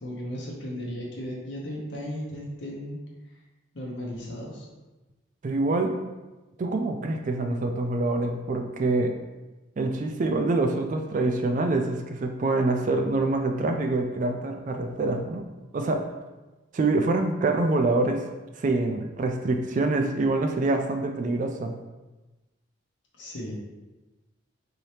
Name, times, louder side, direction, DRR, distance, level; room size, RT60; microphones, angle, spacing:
voice 1, 0.0-3.0 3.7-4.7 23.2-23.6, equal, 60° left, -3 dB, 0.8 m, -35 dB
voice 2, 5.4-6.0 6.6-9.1 9.8-15.4 15.7-16.0 16.7-18.2 18.6-21.7, right 2 dB, 40° right, 4 dB, 0.3 m, -25 dB
4.2 x 2.8 x 3.2 m, 1.1 s
head